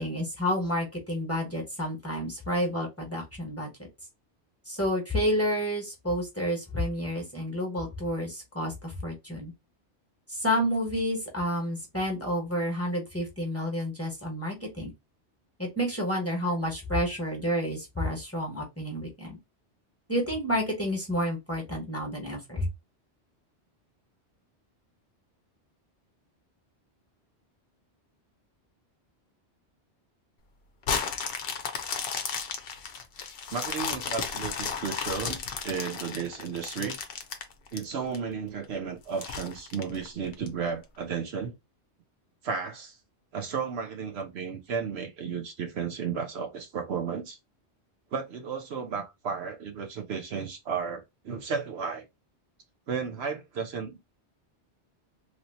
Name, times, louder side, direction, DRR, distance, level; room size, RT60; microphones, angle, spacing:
voice 1, 0.0-3.7 4.7-9.5 10.3-14.9 15.6-19.4 20.1-22.7, equal, 15° left, 1.2 m, -30 dB
sound 1, 30.8-38.2 38.6-38.7 39.2-40.5 41.0-41.1, left 6 dB, 60° left, 0.8 m, -34 dB
voice 2, 33.5-37.0 37.7-41.5 42.4-43.0 43.3-47.4 48.1-52.1 52.9-54.0, right 6 dB, 70° right, 0.9 m, -33 dB
3.1 x 2.8 x 2.7 m
omnidirectional pair, 1.1 m